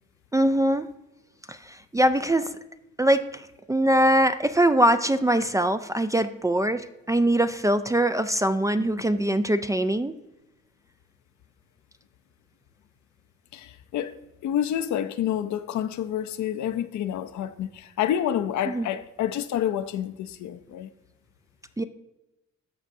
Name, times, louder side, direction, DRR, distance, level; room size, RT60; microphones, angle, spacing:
voice 1, 0.3-0.9 1.5-2.5 3.0-10.1 18.7-18.9 21.8-21.9, right 1 dB, 10° right, 0.3 m, -22 dB
voice 2, 13.5-14.2 14.4-20.9, left 10 dB, 70° left, 0.6 m, -28 dB
14.0 x 5.1 x 2.7 m
cardioid pair, 90°, 30 cm